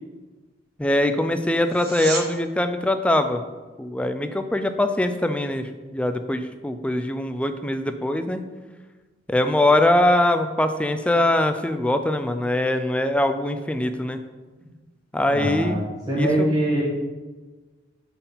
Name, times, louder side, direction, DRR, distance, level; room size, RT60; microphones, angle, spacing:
voice 1, 0.8-3.4 3.8-8.4 9.3-14.2 15.1-15.8 16.2-16.5, left 1 dB, 5° left, 8 dB, 0.3 m, -22 dB
sound 1, 1.6-2.3 13.6-13.7, right 4 dB, 55° right, 0.9 m, -31 dB
voice 2, 15.2-15.8 16.1-16.8, right 1 dB, 20° right, -7 dB, 1.4 m, -23 dB
5.3 x 4.4 x 5.6 m, 1.3 s
head